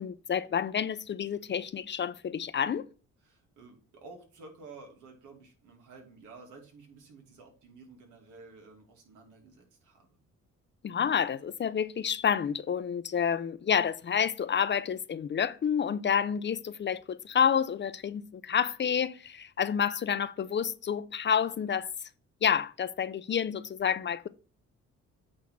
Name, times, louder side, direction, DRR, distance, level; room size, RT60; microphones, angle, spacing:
voice 1, 0.0-2.9 10.8-21.9 22.4-24.3, left 7 dB, 40° left, 0.6 m, -29 dB
voice 2, 3.2-10.1, right 3 dB, 85° right, 2.5 m, -52 dB
8.6 x 3.6 x 5.8 m
cardioid pair, 90°, 30 cm